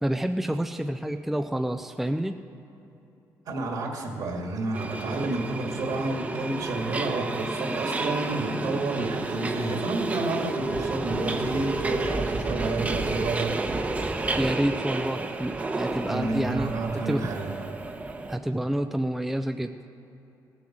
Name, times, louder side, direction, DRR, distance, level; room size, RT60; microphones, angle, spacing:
voice 1, 0.0-2.4 14.4-16.7 17.1-17.3 18.3-19.7, right 1 dB, 5° right, 7 dB, 0.5 m, -28 dB
voice 2, 3.5-13.6 16.1-17.5, right 2 dB, 65° right, 2 dB, 2.2 m, -30 dB
Subway metro underground, 4.7-18.4, right 2 dB, 20° right, 0.9 m, -31 dB
17.0 x 7.8 x 7.4 m, 2.9 s
cardioid pair, 120°, 7 cm